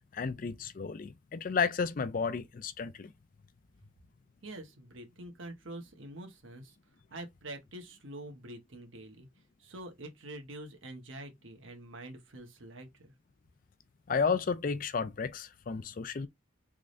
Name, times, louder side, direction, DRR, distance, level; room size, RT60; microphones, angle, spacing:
voice 1, 0.1-3.1 14.1-16.3, left 5 dB, 45° left, 0.4 m, -32 dB
voice 2, 4.4-6.7 7.1-9.3 9.6-13.1, right 1 dB, 85° right, 1.1 m, -46 dB
3.6 x 3.2 x 2.5 m
head